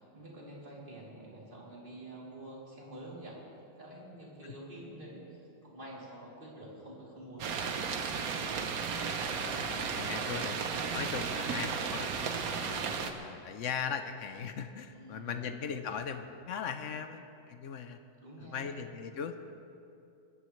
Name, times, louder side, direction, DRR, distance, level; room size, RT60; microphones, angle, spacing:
voice 1, 0.0-3.4 3.8-7.8 14.9-15.5 18.2-18.8 19.1-19.2, right 1 dB, 25° right, -5 dB, 3.0 m, -48 dB
sound 1, 7.4-13.1, right 5 dB, 55° right, 1.2 m, -34 dB
voice 2, 9.4-18.0 18.4-19.4, left 7 dB, 65° left, 8 dB, 0.7 m, -39 dB
21.5 x 14.0 x 3.2 m, 2.7 s
omnidirectional pair, 2.1 m